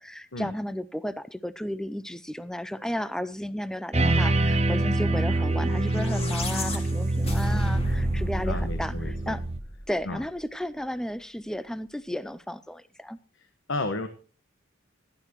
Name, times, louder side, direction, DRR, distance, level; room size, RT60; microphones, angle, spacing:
voice 1, 0.0-9.4 9.9-13.2, equal, 5° left, 15 dB, 0.4 m, -33 dB
sound 1, 3.9-9.6, right 2 dB, 30° right, 0.9 m, -25 dB
sound 2, 5.7-10.1, equal, 30° left, 2.1 m, -33 dB
voice 2, 8.4-9.4 10.0-10.2 13.3-14.1, left 2 dB, 65° left, 9 dB, 1.2 m, -33 dB
16.0 x 11.0 x 3.0 m, 0.39 s
head